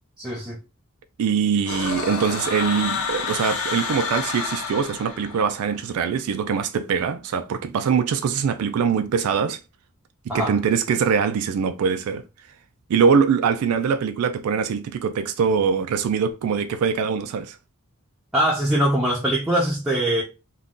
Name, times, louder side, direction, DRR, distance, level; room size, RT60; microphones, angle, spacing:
voice 1, 0.2-0.6 10.3-10.5 18.3-20.2, right 1 dB, 5° right, 0.5 m, -22 dB
voice 2, 1.2-9.6 10.3-12.2 12.9-17.6, right 6 dB, 85° right, 0.3 m, -23 dB
sound 1, 1.7-5.7, left 5 dB, 80° left, 0.7 m, -29 dB
2.6 x 2.3 x 3.5 m
head